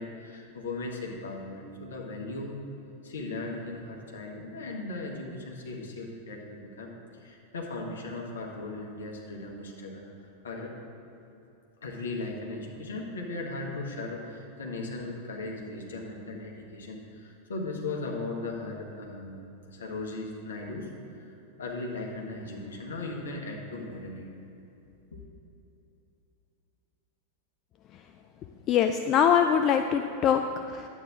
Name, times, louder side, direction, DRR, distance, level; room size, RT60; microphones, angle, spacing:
voice 1, 0.0-2.6 3.0-6.9 7.2-10.7 11.8-19.4 19.7-20.9 21.2-24.3 25.1-25.2, left 2 dB, 65° left, 0 dB, 1.4 m, -37 dB
voice 2, 28.7-30.9, left 8 dB, 35° left, 7 dB, 0.3 m, -23 dB
10.5 x 8.6 x 3.7 m, 2.9 s
figure-of-eight pair, 90°, 0 cm